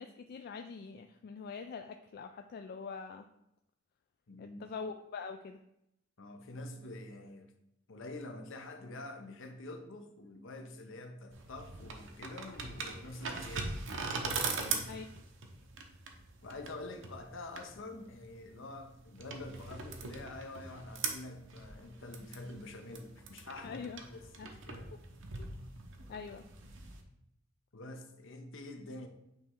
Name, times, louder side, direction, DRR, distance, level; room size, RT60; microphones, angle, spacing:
voice 1, 0.0-3.3 4.4-5.6 14.9-15.1 23.6-24.0 24.4-24.5 25.4-25.5 26.1-26.4, left 5 dB, 50° left, 0.3 m, -44 dB
voice 2, 4.3-4.6 6.2-7.5 7.9-13.7 14.4-15.0 16.4-25.0 27.7-29.1, left 2 dB, 65° left, 0.8 m, -47 dB
sound 1, 11.3-27.0, right 4 dB, 65° right, 0.8 m, -41 dB
8.5 x 3.2 x 3.6 m
head